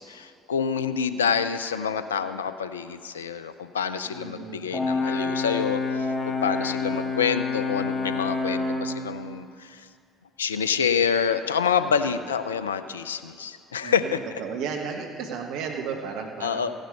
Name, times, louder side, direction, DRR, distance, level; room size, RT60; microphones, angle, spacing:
voice 1, 0.0-9.9 10.4-14.2 16.4-16.7, left 7 dB, 90° left, 12 dB, 0.5 m, -27 dB
voice 2, 4.0-4.7 11.8-12.2 13.8-16.7, right 6 dB, 65° right, 2 dB, 1.2 m, -34 dB
Brass instrument, 4.7-9.0, left 3 dB, 20° left, 1.8 m, -27 dB
15.5 x 10.5 x 5.4 m, 2.3 s
hypercardioid pair, 55°, 0 cm